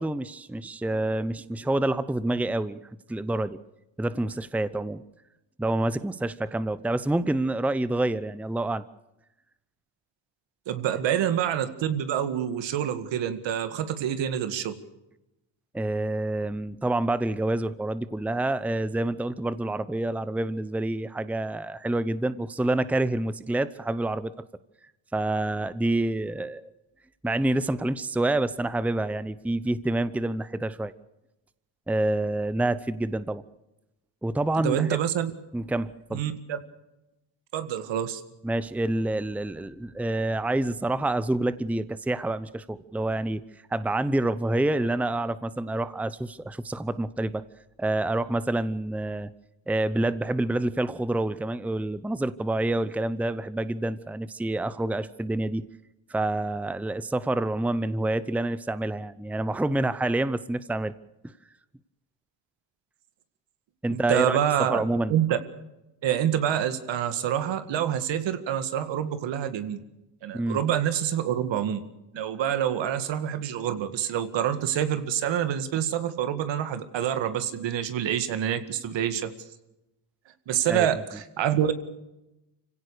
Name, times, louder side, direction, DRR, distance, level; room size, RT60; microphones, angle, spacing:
voice 1, 0.0-2.8 3.1-3.6 4.0-5.0 5.6-8.8 15.7-24.3 25.1-26.7 27.2-30.9 31.9-33.4 34.2-34.9 35.5-36.2 38.4-43.4 43.7-47.4 47.8-49.3 49.7-55.6 56.1-60.9 63.8-64.4 64.7-65.2 70.3-70.6 80.7-80.9, right 2 dB, 5° right, 15 dB, 0.8 m, -27 dB
voice 2, 10.7-14.8 34.6-35.3 36.1-36.6 37.5-38.2 63.9-64.8 65.1-65.4 66.0-69.8 70.2-71.8 72.1-79.3 80.5-81.7, right 10 dB, 70° right, 11 dB, 2.0 m, -27 dB
25.5 x 16.5 x 6.8 m, 0.92 s
cardioid pair, 90°, 46 cm